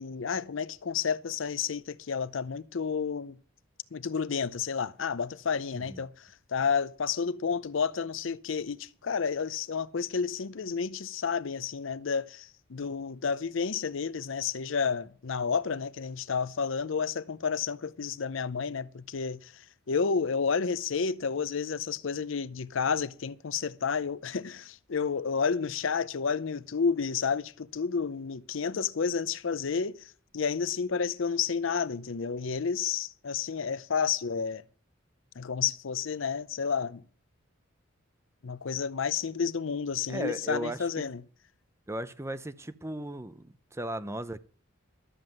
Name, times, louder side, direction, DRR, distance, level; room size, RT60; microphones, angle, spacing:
voice 1, 0.0-3.4 3.9-19.5 19.9-34.6 35.4-37.0 38.4-41.2, left 6 dB, 65° left, 0.6 m, -31 dB
voice 2, 40.1-41.1 41.9-44.4, right 1 dB, 15° right, 0.6 m, -36 dB
12.5 x 7.6 x 7.7 m
head